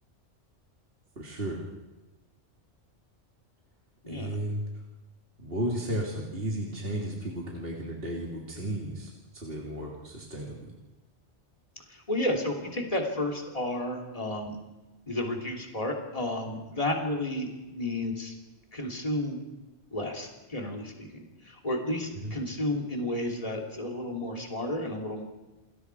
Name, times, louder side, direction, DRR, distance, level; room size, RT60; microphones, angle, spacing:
voice 1, 1.2-1.6 4.1-4.6 5.4-10.7 22.2-22.3, right 1 dB, 55° right, -3 dB, 3.4 m, -34 dB
voice 2, 4.0-4.4 11.9-14.6 15.1-18.3 18.7-19.4 19.9-25.2, left 1 dB, 30° left, 0 dB, 3.3 m, -32 dB
29.5 x 21.0 x 4.8 m, 1.1 s
omnidirectional pair, 1.2 m